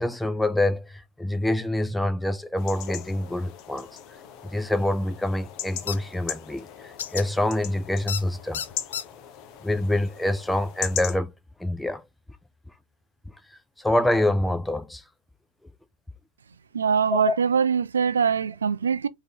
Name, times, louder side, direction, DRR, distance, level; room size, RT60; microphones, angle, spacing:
voice 1, 0.0-3.9 4.4-8.6 9.6-11.3 11.6-12.0 13.8-15.0 17.1-17.3, left 1 dB, 5° left, 0.6 m, -26 dB
sound 1, 2.6-11.2, left 10 dB, 40° left, 0.8 m, -39 dB
sound 2, 5.9-6.0 7.0-7.2 8.1-8.2 8.5-9.0, left 9 dB, 65° left, 0.5 m, -31 dB
voice 2, 16.7-19.1, right 6 dB, 70° right, 0.5 m, -23 dB
3.8 x 3.0 x 3.7 m
figure-of-eight pair, 90°, 0 cm